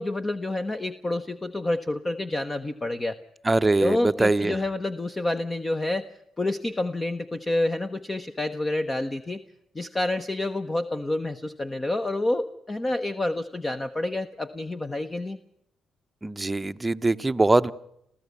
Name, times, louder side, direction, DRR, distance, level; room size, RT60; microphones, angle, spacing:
voice 1, 0.0-3.2 3.8-6.1 6.4-9.4 9.7-15.4, left 2 dB, 20° left, 9 dB, 1.0 m, -28 dB
voice 2, 3.4-4.6 16.2-17.7, right 2 dB, 15° right, 11 dB, 0.8 m, -22 dB
28.5 x 14.5 x 8.3 m, 0.76 s
cardioid pair, 90°, 0 cm